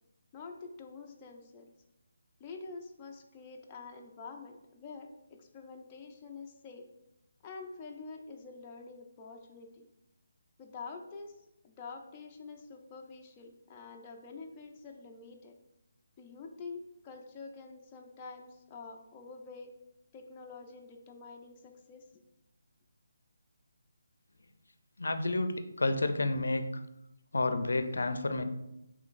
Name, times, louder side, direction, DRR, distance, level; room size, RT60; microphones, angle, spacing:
voice 1, 0.3-1.7 2.4-6.9 7.4-9.9 10.6-11.4 11.6-15.6 16.2-19.7 20.1-22.2, left 4 dB, 20° left, 1 dB, 0.4 m, -47 dB
voice 2, 25.0-25.5 25.8-26.6 27.3-28.4, left 2 dB, 85° left, 9 dB, 0.4 m, -30 dB
5.0 x 3.1 x 2.5 m, 0.88 s
hypercardioid pair, 165°, 0 cm